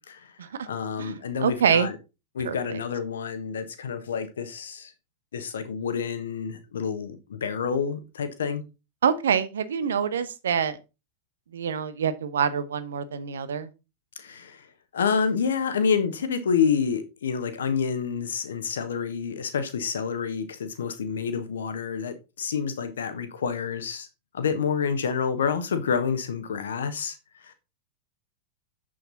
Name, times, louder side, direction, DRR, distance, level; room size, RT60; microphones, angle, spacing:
voice 1, 0.7-2.0 2.3-4.9 5.3-8.6 14.2-14.7 14.9-24.1 24.3-27.5, left 6 dB, 65° left, 1.3 m, -28 dB
voice 2, 1.4-1.9 2.4-2.8 9.0-10.8 11.5-13.7, right 7 dB, 65° right, 1.1 m, -26 dB
7.9 x 7.8 x 4.0 m
figure-of-eight pair, 90°, 0 cm